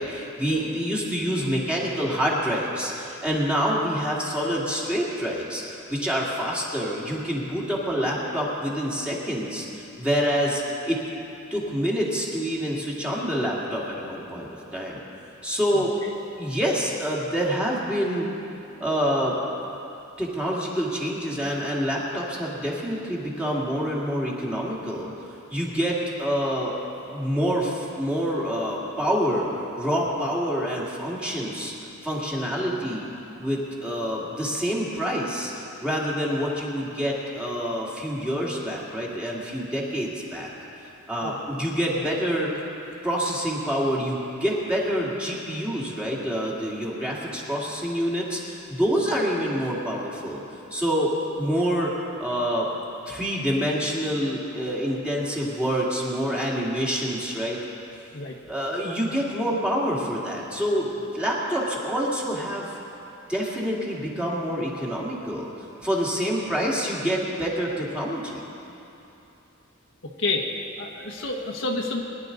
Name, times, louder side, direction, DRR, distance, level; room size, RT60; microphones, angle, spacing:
voice 1, 0.0-11.0 11.5-15.0 15.4-15.9 16.4-18.3 18.8-19.4 20.2-25.1 25.5-26.7 27.1-31.7 32.0-33.0 33.4-40.5 41.1-42.5 43.0-50.4 50.7-51.1 51.4-51.9 52.2-52.7 53.1-57.6 58.4-62.7 63.3-65.5 65.8-68.4, equal, 5° right, -5 dB, 2.2 m, -27 dB
voice 2, 70.8-72.0, left 3 dB, 65° left, 1 dB, 1.3 m, -28 dB
22.5 x 11.0 x 3.9 m, 2.9 s
head